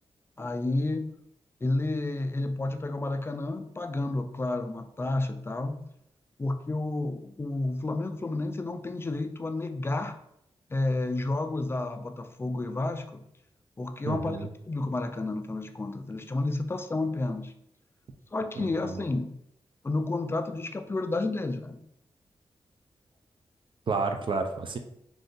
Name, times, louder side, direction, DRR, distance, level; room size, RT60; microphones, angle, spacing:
voice 1, 0.4-1.1 1.6-5.8 6.4-10.2 10.7-13.2 13.8-17.5 18.3-19.3 19.8-21.8, left 2 dB, 25° left, 8 dB, 0.3 m, -31 dB
voice 2, 14.0-14.5 18.6-19.0 23.9-24.8, right 4 dB, 55° right, 6 dB, 0.4 m, -31 dB
2.6 x 2.5 x 3.6 m, 0.75 s
cardioid pair, 75°, 10 cm